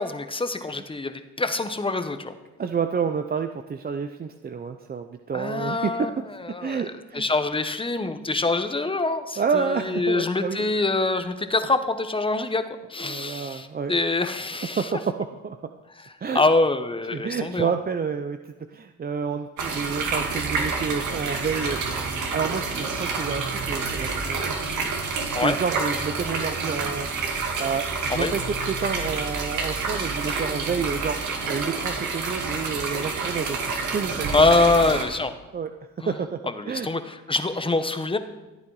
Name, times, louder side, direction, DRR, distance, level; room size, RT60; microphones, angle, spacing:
voice 1, 0.0-2.3 5.3-6.1 6.5-12.6 12.9-14.8 16.3-17.7 25.3-25.6 28.1-28.3 30.2-30.4 34.3-35.3 36.0-36.1 36.6-38.2, left 3 dB, 15° left, 9 dB, 1.0 m, -24 dB
voice 2, 2.6-6.1 6.6-7.3 9.4-10.6 13.0-14.0 14.7-15.7 16.2-16.4 17.1-18.4 18.7-22.0 22.3-24.6 25.1-27.1 27.6-33.6 33.9-34.3 34.6-34.7 35.5-35.7 36.0-36.9, right 6 dB, 30° right, 7 dB, 0.6 m, -29 dB
sound 1, 19.6-35.0, right 4 dB, 75° right, 2.2 m, -28 dB
14.5 x 8.8 x 4.8 m, 1.1 s
cardioid pair, 90°, 30 cm